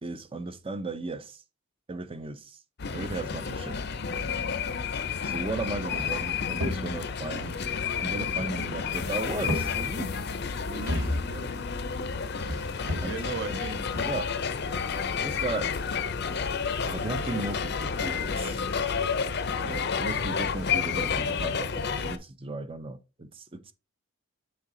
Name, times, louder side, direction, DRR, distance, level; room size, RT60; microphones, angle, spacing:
voice 1, 0.0-1.4 1.9-2.6 2.9-3.8 5.2-7.6 8.0-10.1 13.0-13.1 13.5-13.6 14.0-14.3 15.2-15.7 16.9-18.6 19.6-23.7, right 2 dB, 25° right, 0.6 m, -36 dB
sound 1, 2.8-22.2, left 6 dB, 50° left, 0.6 m, -30 dB
sound 2, 5.7-7.2 8.2-9.0 9.3-10.1 10.7-11.4 12.4-13.4 13.9-14.1, left 1 dB, 85° right, 1.8 m, -34 dB
voice 2, 10.7-11.5 13.0-13.8, right 3 dB, 55° right, 1.2 m, -37 dB
6.9 x 4.3 x 3.8 m
head